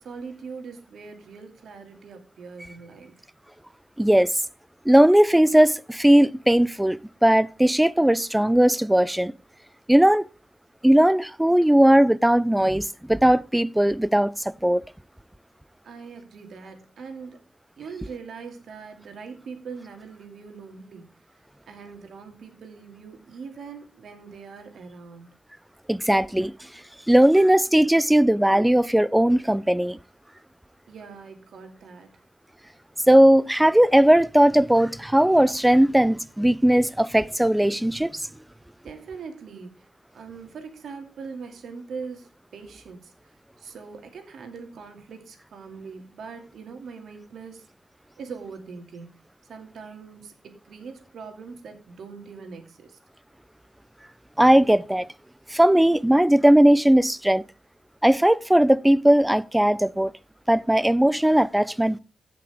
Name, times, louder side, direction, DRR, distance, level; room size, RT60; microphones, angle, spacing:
voice 1, 0.0-3.3 15.8-17.4 17.8-21.4 21.7-25.3 30.9-32.1 38.8-39.9 40.1-47.7 48.2-49.2 49.5-53.0, right 5 dB, 80° right, 2.4 m, -41 dB
voice 2, 4.0-4.3 4.9-9.3 9.9-10.3 10.8-14.8 25.9-26.5 27.1-30.0 33.1-38.2 54.4-55.1 55.5-57.4 58.0-60.1 60.5-62.0, right 1 dB, 5° right, 0.5 m, -18 dB
16.0 x 6.0 x 3.5 m
cardioid pair, 75°, 0 cm